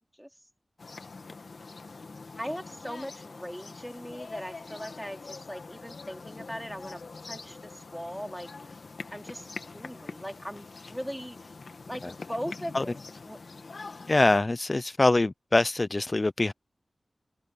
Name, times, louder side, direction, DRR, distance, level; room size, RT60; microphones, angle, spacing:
sound 1, 0.8-14.4, left 4 dB, 75° left, 1.5 m, -44 dB
voice 1, 2.4-7.0 7.3-8.7 9.1-9.5 9.7-11.5 11.9-13.0 13.2-13.6, equal, ahead, 2.6 m, -39 dB
voice 2, 14.1-16.5, left 2 dB, 40° left, 0.5 m, -24 dB
wide cardioid pair, 60°, 0 cm